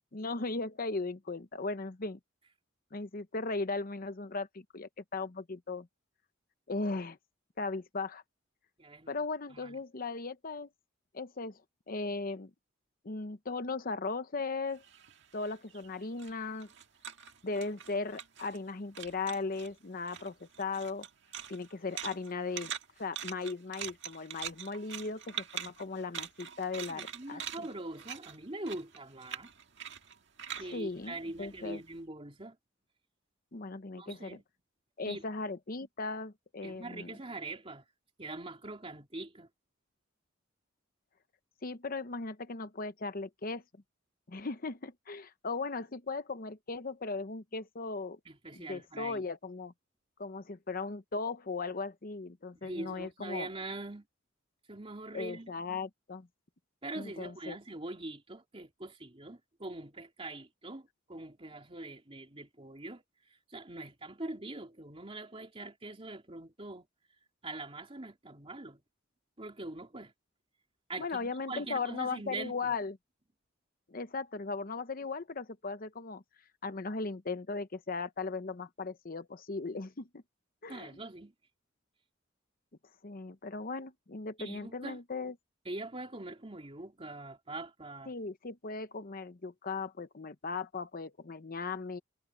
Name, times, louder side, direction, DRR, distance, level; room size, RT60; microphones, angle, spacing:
voice 1, 0.1-2.2 2.9-5.9 6.7-7.2 7.6-8.2 9.1-10.7 11.1-11.6 11.9-12.5 13.0-14.8 15.3-16.7 17.4-21.1 21.5-22.7 23.0-27.7 30.6-31.8 33.5-34.4 35.0-37.2 41.6-43.6 44.3-48.2 48.5-49.7 50.2-53.5 55.1-56.3 56.9-57.6 71.0-73.0 73.9-76.2 76.6-80.2 80.6-80.9 83.0-85.3 88.1-92.0, left 3 dB, 45° left, 0.9 m, -37 dB
voice 2, 8.8-9.1 9.5-9.8 26.9-29.5 30.6-32.6 34.0-34.4 35.1-35.2 36.6-37.8 38.2-39.5 48.2-49.2 52.6-54.1 54.7-55.5 56.8-63.0 63.5-66.9 67.4-68.8 69.4-70.1 70.9-72.7 80.7-81.3 84.4-85.0 85.6-88.1, right 2 dB, 30° right, 3.1 m, -43 dB
sound 1, 14.7-18.7 18.9-19.7 20.0-31.9, right 9 dB, 60° right, 1.9 m, -44 dB
head